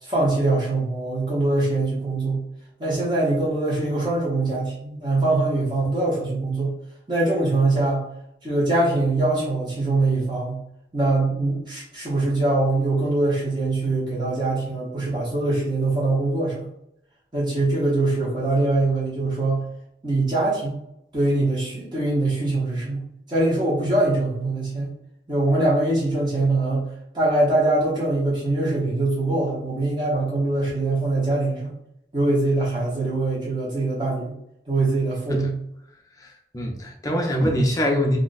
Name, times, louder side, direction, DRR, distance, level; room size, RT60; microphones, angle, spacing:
voice 1, 0.0-2.5 2.8-6.7 7.1-8.1 8.4-10.6 10.9-16.7 17.3-19.7 20.0-20.8 21.1-23.0 23.3-24.9 25.3-31.7 32.1-34.3 34.7-35.6, right 2 dB, 25° right, -7 dB, 0.9 m, -23 dB
voice 2, 36.2-38.2, equal, 20° left, 1 dB, 0.5 m, -23 dB
2.5 x 2.2 x 3.9 m, 0.76 s
head